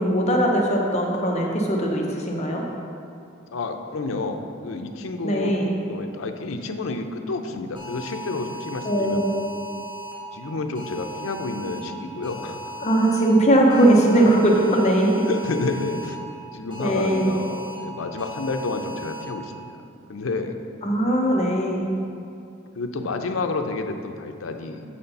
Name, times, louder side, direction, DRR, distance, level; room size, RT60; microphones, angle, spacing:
voice 1, 0.0-2.6 5.2-5.7 8.8-9.3 12.8-15.3 16.8-17.3 20.8-21.9, right 1 dB, 35° left, -1 dB, 0.8 m, -20 dB
voice 2, 3.5-5.5 5.9-9.2 10.3-12.6 15.3-16.2 16.5-19.7 20.1-20.6 22.7-24.8, left 3 dB, 85° left, 5 dB, 0.6 m, -30 dB
sound 1, 7.8-10.1 10.8-11.8 12.2-13.3 13.7-16.1 16.7-17.7 18.2-19.2, right 1 dB, 25° right, 1.6 m, -37 dB
7.8 x 4.3 x 5.4 m, 2.5 s
head